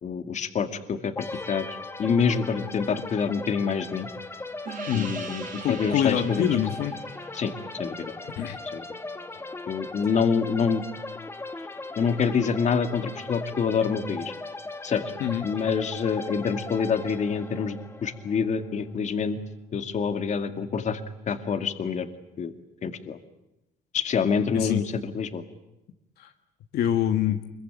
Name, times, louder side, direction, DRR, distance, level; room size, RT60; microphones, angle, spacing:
voice 1, 0.0-1.1 1.5-4.1 4.9-6.5 7.3-7.5 7.8-8.1 8.7-8.8 9.7-10.8 12.0-14.3 14.8-15.0 15.4-19.4 19.7-21.0 21.3-22.1 22.4-22.5 22.8-23.2 23.9-25.4, left 6 dB, 45° left, 7 dB, 2.2 m, -26 dB
sound 1, 1.2-18.8, left 2 dB, 15° left, 1.6 m, -38 dB
Gong, 4.7-9.7, right 6 dB, 55° right, 4.5 m, -43 dB
voice 2, 5.6-6.9 8.4-8.6 15.2-15.4 24.5-24.8 26.2-26.3 26.7-27.4, left 10 dB, 70° left, 5 dB, 1.6 m, -25 dB
25.0 x 22.5 x 9.1 m, 0.92 s
cardioid pair, 110°, 17 cm